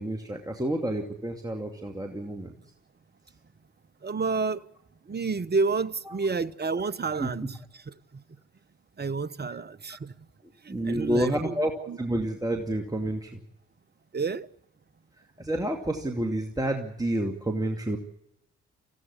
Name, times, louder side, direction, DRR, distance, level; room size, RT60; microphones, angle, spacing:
voice 1, 0.0-2.5 7.1-7.3 10.7-11.7 12.0-13.3 15.4-18.0, right 1 dB, 10° right, 2.7 m, -29 dB
voice 2, 4.0-4.6 5.1-7.9 9.0-10.1 10.6-11.5 11.9-12.0 14.1-14.5, right 4 dB, 30° right, 1.1 m, -30 dB
26.5 x 15.5 x 8.5 m
figure-of-eight pair, 40°, 34 cm